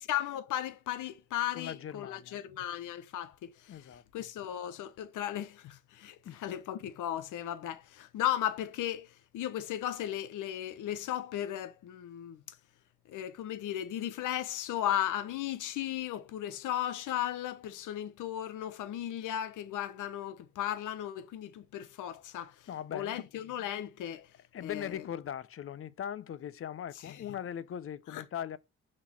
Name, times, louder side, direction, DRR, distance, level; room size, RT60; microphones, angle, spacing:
voice 1, 0.0-12.6 13.1-24.3 24.6-25.1 27.0-27.2 28.1-28.2, left 11 dB, 85° left, 1.0 m, -36 dB
voice 2, 1.5-2.4 3.7-4.3 6.2-6.4 22.7-23.2 24.5-28.6, left 9 dB, 45° left, 0.7 m, -40 dB
5.9 x 4.3 x 5.9 m
cardioid pair, 90°, 30 cm